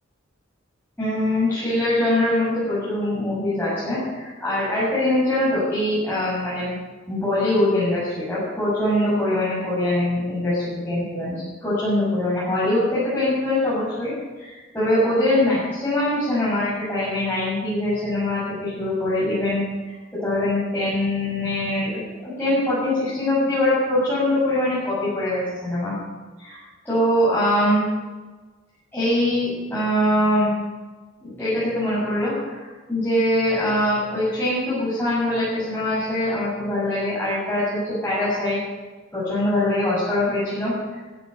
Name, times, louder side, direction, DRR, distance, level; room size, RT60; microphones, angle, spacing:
voice 1, 1.0-6.8 7.1-19.9 20.2-25.9 26.4-26.6 26.8-27.8 28.9-30.5 31.2-38.6 39.1-40.7, left 1 dB, 10° left, -11 dB, 7.2 m, -23 dB
15.5 x 13.0 x 6.7 m, 1.3 s
head